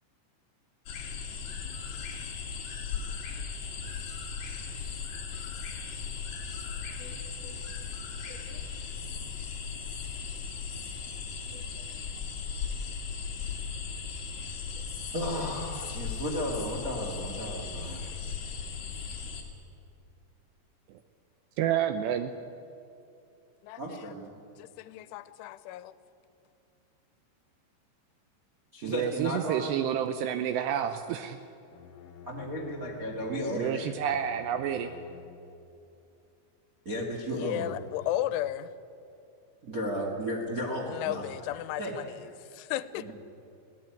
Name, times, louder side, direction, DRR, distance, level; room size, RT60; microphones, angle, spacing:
sound 1, 0.9-19.4, left 6 dB, 45° left, 2.9 m, -37 dB
voice 1, 7.0-7.6 8.3-8.6 11.5-11.9 15.1-18.2 23.8-24.3 28.7-29.8 32.2-33.9 36.8-37.7 39.6-41.9 42.9-43.1, equal, 60° right, -1 dB, 0.9 m, -35 dB
voice 2, 21.6-22.4 28.8-31.4 33.5-34.9, right 9 dB, 80° right, 9 dB, 2.6 m, -29 dB
voice 3, 23.6-24.1 24.6-25.9 37.4-38.7 40.8-43.1, left 13 dB, 90° left, 15 dB, 3.2 m, -35 dB
Bowed string instrument, 31.7-35.7, left 4 dB, 65° left, 2.4 m, -50 dB
22.0 x 17.0 x 9.1 m, 2.7 s
omnidirectional pair, 5.4 m